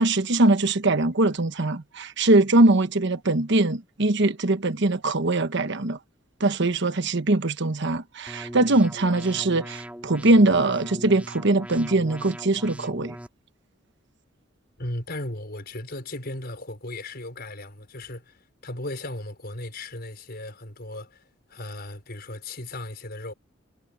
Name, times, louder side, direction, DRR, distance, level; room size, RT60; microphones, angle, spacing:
voice 1, 0.0-6.0 6.4-13.2, right 2 dB, 65° right, 1.2 m, -22 dB
sound 1, 8.3-13.3, equal, 5° right, 3.5 m, -40 dB
voice 2, 14.8-21.2 21.5-23.3, left 1 dB, 55° left, 5.5 m, -36 dB
head